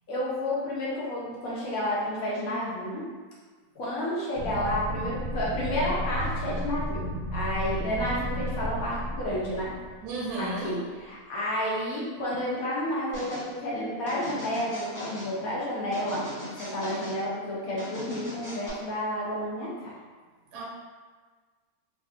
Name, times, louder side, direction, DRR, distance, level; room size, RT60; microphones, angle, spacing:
voice 1, 0.1-3.0 3.8-9.7 10.4-16.3 16.6-19.9, left 1 dB, 70° left, -6 dB, 1.2 m, -31 dB
sound 1, 4.3-10.5, equal, 65° right, 0.5 m, -33 dB
voice 2, 10.0-10.7 20.5-20.6, right 2 dB, 85° right, -3 dB, 1.1 m, -33 dB
sound 2, 13.1-13.5 14.1-15.3 15.9-17.2 17.8-18.7, left 1 dB, 20° left, 0.5 m, -39 dB
3.2 x 2.6 x 2.4 m, 1.5 s
omnidirectional pair, 1.6 m